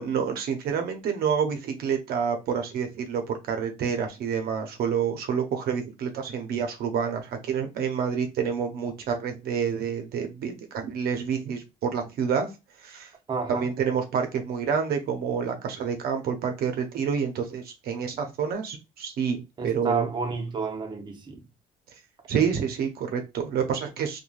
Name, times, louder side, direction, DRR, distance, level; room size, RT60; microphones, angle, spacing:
voice 1, 0.0-12.5 12.8-13.1 13.5-20.1 22.3-24.2, right 7 dB, 65° right, 0.6 m, -28 dB
voice 2, 13.3-13.7 19.6-21.4, right 4 dB, 25° right, 0.6 m, -30 dB
3.1 x 2.2 x 2.4 m
cardioid pair, 110°, 17 cm